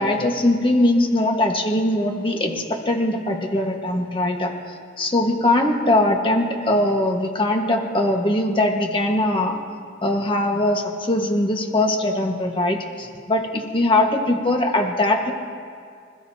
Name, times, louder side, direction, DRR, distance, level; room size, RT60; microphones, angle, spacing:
voice 1, 0.0-4.5 5.0-9.6 10.0-15.3, left 1 dB, 30° left, 2 dB, 1.5 m, -21 dB
26.0 x 14.5 x 2.9 m, 2.2 s
head